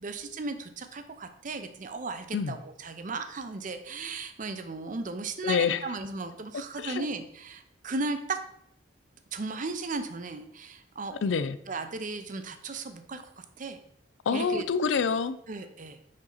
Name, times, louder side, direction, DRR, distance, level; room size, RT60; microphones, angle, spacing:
voice 1, 0.0-8.4 9.3-11.1 11.7-13.2 13.6-13.8 14.3-14.6 15.5-16.0, right 3 dB, 45° right, 8 dB, 0.6 m, -36 dB
voice 2, 5.4-5.8 6.5-7.1 11.2-11.6 14.3-15.4, left 5 dB, 90° left, 14 dB, 0.4 m, -27 dB
5.5 x 5.2 x 3.9 m, 0.71 s
head